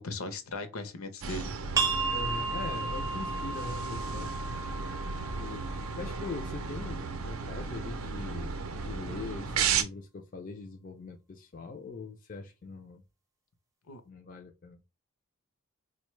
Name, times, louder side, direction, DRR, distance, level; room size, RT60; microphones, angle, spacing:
voice 1, 0.0-1.5 13.9-14.0, left 2 dB, 75° left, 0.6 m, -38 dB
sound 1, 1.2-9.8, right 5 dB, 70° right, 0.5 m, -34 dB
sound 2, 1.8-7.1, right 4 dB, 15° right, 0.5 m, -35 dB
voice 2, 2.1-4.3 5.4-13.0 14.1-14.8, left 4 dB, 35° left, 0.3 m, -42 dB
4.2 x 2.1 x 3.1 m
head